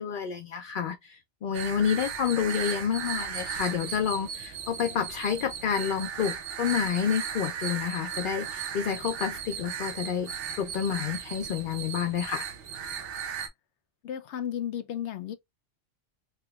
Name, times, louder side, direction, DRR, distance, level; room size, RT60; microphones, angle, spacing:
voice 1, 0.0-10.3 10.6-12.4, left 8 dB, 60° left, 0.6 m, -29 dB
sound 1, 1.5-13.5, right 8 dB, 80° right, 1.0 m, -36 dB
voice 2, 14.0-15.3, left 9 dB, 80° left, 0.9 m, -33 dB
3.4 x 2.9 x 2.3 m
omnidirectional pair, 1.2 m